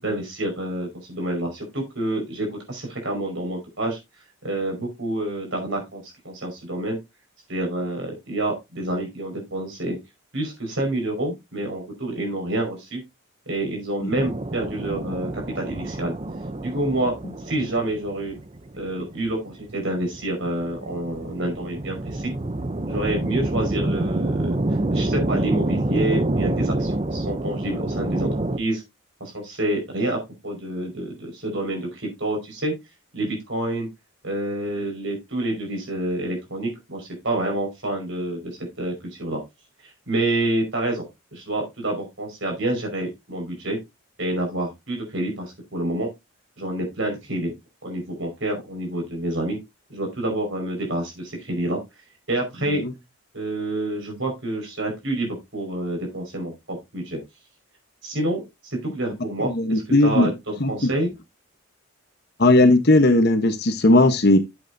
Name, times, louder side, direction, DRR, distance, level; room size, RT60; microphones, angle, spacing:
voice 1, 0.0-4.0 4.4-7.0 7.5-10.0 10.3-13.0 13.5-16.1 16.6-17.1 17.4-18.3 18.7-22.3 22.9-24.3 24.9-28.3 28.6-28.8 29.2-32.7 33.1-33.9 34.2-38.5 38.8-38.9 39.2-39.4 40.1-43.8 44.2-46.1 46.6-47.5 47.8-49.6 49.9-51.8 52.3-52.8 53.3-57.2 58.0-61.1, right 1 dB, 60° right, 5.1 m, -28 dB
sound 1, 14.1-28.6, right 1 dB, 25° right, 0.6 m, -27 dB
voice 2, 59.4-60.3 60.6-60.7 62.4-64.4, left 2 dB, 50° left, 1.1 m, -17 dB
11.0 x 8.2 x 2.7 m
head